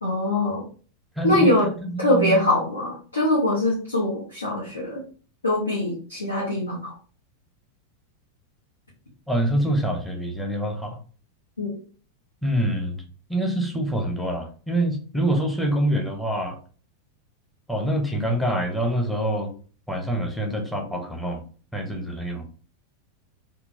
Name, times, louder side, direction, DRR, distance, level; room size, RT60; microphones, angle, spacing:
voice 1, 0.0-0.6 1.2-1.7 2.0-5.0 5.4-6.9 11.6-11.7, left 1 dB, 75° left, -5 dB, 0.9 m, -23 dB
voice 2, 1.2-2.6 9.3-11.0 12.4-13.0 13.3-16.6 17.7-19.5 19.9-21.4 21.7-22.4, right 1 dB, 5° left, 1 dB, 0.7 m, -26 dB
3.7 x 2.2 x 2.6 m, 0.40 s
figure-of-eight pair, 90°, 0 cm